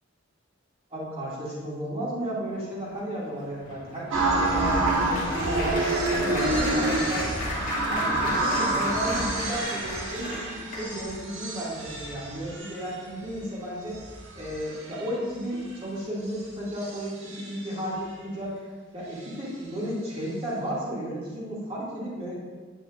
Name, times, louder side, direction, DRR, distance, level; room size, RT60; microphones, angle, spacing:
voice 1, 0.9-5.8 6.1-7.3 7.8-14.0 14.4-18.6 18.9-22.4, equal, 30° right, -7 dB, 2.2 m, -33 dB
Applause, 2.9-11.2 11.9-12.1 12.4-12.6, left 1 dB, 45° left, 1.3 m, -36 dB
sound 1, 4.1-13.3 13.9-15.1 16.4-16.5 16.7-17.7, right 2 dB, 80° right, 1.3 m, -28 dB
8.8 x 7.8 x 2.5 m, 1.5 s
head